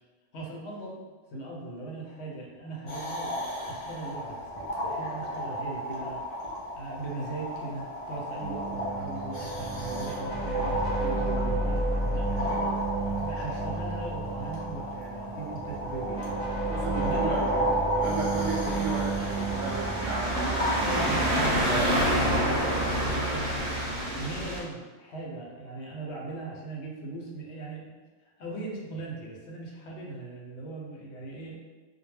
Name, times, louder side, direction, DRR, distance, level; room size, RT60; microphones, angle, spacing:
voice 1, 0.3-3.4 3.7-4.5 4.8-6.2 6.7-12.5 13.2-16.3 17.0-17.4 20.8-21.6 22.4-22.7 23.1-23.8 24.1-28.0 28.4-31.5, right 2 dB, 70° left, -2 dB, 0.8 m, -39 dB
sound 1, 2.9-21.6, equal, 45° left, 0.4 m, -34 dB
sound 2, 8.4-21.9, right 3 dB, 5° left, 1.0 m, -32 dB
voice 2, 16.7-17.6 17.9-21.3 21.7-22.3, right 3 dB, 80° right, -2 dB, 0.9 m, -35 dB
sound 3, 18.3-24.6, right 1 dB, 45° right, 0.7 m, -28 dB
2.1 x 2.1 x 3.1 m, 1.3 s
omnidirectional pair, 1.2 m